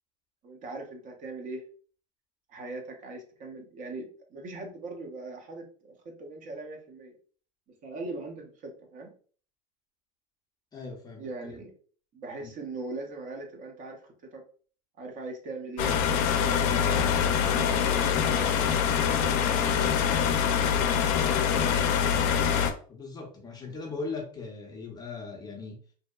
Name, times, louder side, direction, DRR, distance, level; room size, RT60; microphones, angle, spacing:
voice 1, 0.4-1.6 2.5-7.2 7.8-9.1 11.2-11.8 12.1-14.4 15.0-16.9 17.4-18.9 20.1-20.9 21.2-21.7, right 2 dB, 40° right, 3 dB, 0.6 m, -40 dB
voice 2, 10.7-11.6 12.4-12.5 22.9-25.8, left 4 dB, 20° left, 1 dB, 0.5 m, -39 dB
sound 1, 15.8-22.7, left 8 dB, 65° left, 0.5 m, -24 dB
2.6 x 2.1 x 2.3 m, 0.43 s
supercardioid pair, 125°, 21 cm